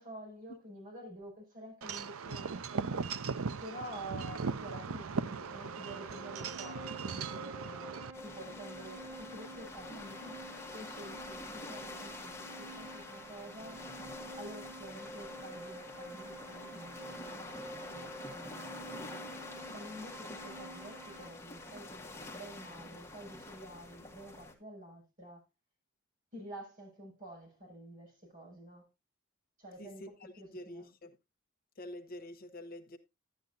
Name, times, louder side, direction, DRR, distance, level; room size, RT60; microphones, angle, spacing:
voice 1, 0.0-2.9 3.6-10.4 10.7-13.8 14.4-19.2 19.7-25.4 26.3-28.9 29.6-30.9, right 1 dB, 40° right, 6.7 m, -49 dB
Wind chime / Wind, 1.8-8.1, right 5 dB, 80° right, 0.6 m, -38 dB
sound 1, 5.0-21.3, right 1 dB, 15° right, 1.3 m, -49 dB
sound 2, 8.1-24.5, left 2 dB, 15° left, 1.7 m, -47 dB
voice 2, 29.8-31.1 31.8-33.0, left 1 dB, 45° left, 0.9 m, -47 dB
11.5 x 10.5 x 2.7 m
head